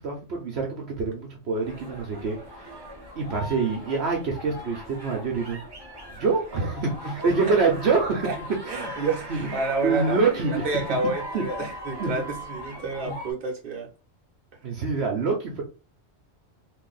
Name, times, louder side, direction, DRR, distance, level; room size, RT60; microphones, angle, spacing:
voice 1, 0.0-2.7 3.2-5.6 6.1-8.3 9.3-9.6 9.8-10.7 11.3-11.7 12.0-12.1 13.0-13.1 14.6-15.6, right 4 dB, 70° right, 1.1 m, -26 dB
sound 1, 1.6-13.3, left 1 dB, 20° right, 1.0 m, -39 dB
voice 2, 6.6-7.1 7.5-7.6 8.2-8.4 8.7-10.2 10.5-13.9, right 3 dB, 50° right, 1.1 m, -30 dB
2.8 x 2.7 x 3.9 m
omnidirectional pair, 1.2 m